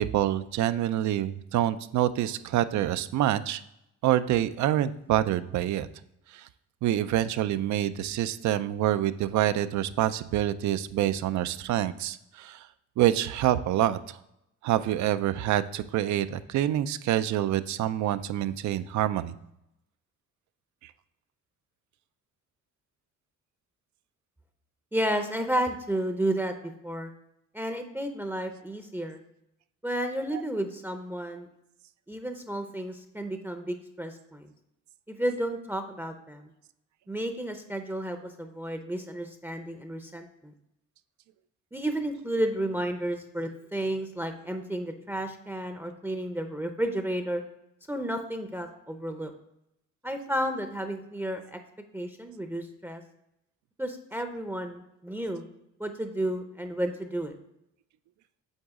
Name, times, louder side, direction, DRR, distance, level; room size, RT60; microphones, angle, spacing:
voice 1, 0.0-3.6 4.0-5.9 6.3-6.4 6.8-12.7 13.0-14.2 14.6-19.3, right 12 dB, 70° right, 14 dB, 0.5 m, -26 dB
voice 2, 24.9-26.5 26.8-27.1 27.5-29.2 29.8-31.5 32.1-34.5 35.1-36.5 37.1-40.5 41.7-47.4 47.9-49.3 50.0-51.6 51.9-53.0 53.8-55.4 55.8-57.3, right 1 dB, 5° right, 6 dB, 0.6 m, -32 dB
8.0 x 3.9 x 3.6 m, 0.82 s
cardioid pair, 90°, 30 cm